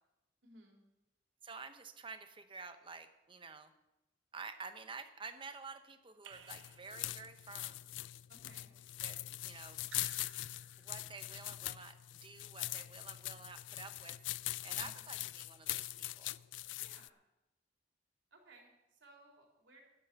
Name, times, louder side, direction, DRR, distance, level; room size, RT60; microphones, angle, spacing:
voice 1, 0.4-0.8 8.3-8.8 14.7-15.0 16.7-17.2 18.3-19.8, right 2 dB, 70° right, 0 dB, 3.4 m, -61 dB
voice 2, 1.4-3.7 4.3-7.8 9.0-9.2 9.4-9.8 10.8-14.2 14.6-16.3, right 4 dB, 25° right, 8 dB, 0.9 m, -50 dB
Raindrop / Drip, 6.2-7.5 9.8-11.2, right 9 dB, 90° right, 0.7 m, -58 dB
sound 1, 6.3-17.1, left 16 dB, 75° left, 0.3 m, -42 dB
12.0 x 11.0 x 6.0 m, 0.94 s
head